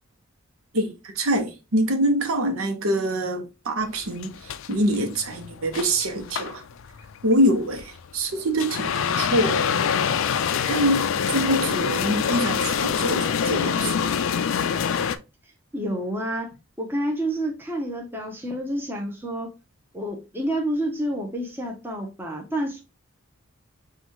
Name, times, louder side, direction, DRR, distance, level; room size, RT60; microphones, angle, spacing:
voice 1, 0.7-6.6 7.2-9.7 10.7-14.0, right 1 dB, 75° right, 0.8 m, -25 dB
sound 1, 3.8-15.2, left 7 dB, 65° left, 0.3 m, -25 dB
voice 2, 15.7-19.5 19.9-22.8, right 1 dB, 10° right, 0.7 m, -29 dB
5.9 x 2.4 x 2.9 m
head